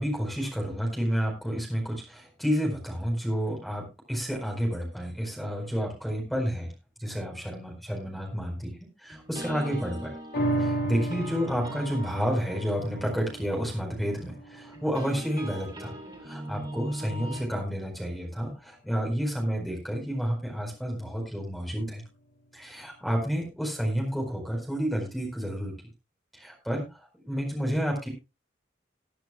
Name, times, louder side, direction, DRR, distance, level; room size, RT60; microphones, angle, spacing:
voice 1, 0.0-6.7 7.0-10.2 10.6-16.0 16.2-22.0 22.5-25.7 26.3-28.1, equal, ahead, 0 dB, 4.6 m, -30 dB
sound 1, 9.1-17.4, right 1 dB, 25° right, 2.6 m, -42 dB
sound 2, 10.3-17.0 17.5-17.6, right 1 dB, 60° left, 2.9 m, -35 dB
20.0 x 10.5 x 2.3 m, 0.26 s
head